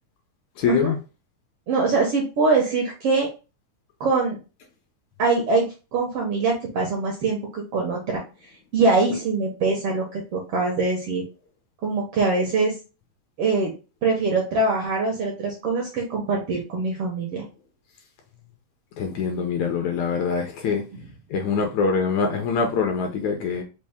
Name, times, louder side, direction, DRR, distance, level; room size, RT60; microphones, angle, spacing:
voice 1, 0.6-1.0 19.0-20.8 21.3-23.6, left 5 dB, 75° left, 1.8 m, -24 dB
voice 2, 1.7-3.3 4.0-4.4 5.2-5.7 5.9-8.2 8.7-11.2 11.8-12.8 13.4-13.7 14.0-17.5, right 3 dB, 70° right, 1.4 m, -23 dB
5.5 x 2.5 x 3.5 m
omnidirectional pair, 3.7 m